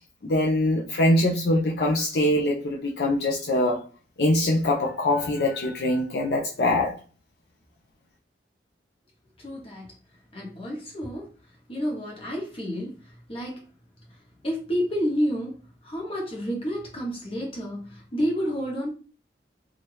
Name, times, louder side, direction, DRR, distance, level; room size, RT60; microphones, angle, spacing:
voice 1, 0.2-3.8 4.2-7.0, left 1 dB, 65° left, 0.5 m, -23 dB
voice 2, 9.4-9.9 10.3-11.2 11.7-12.9 13.3-13.6 14.4-15.5 15.8-18.9, equal, 30° left, 1.1 m, -29 dB
2.8 x 2.4 x 3.2 m
head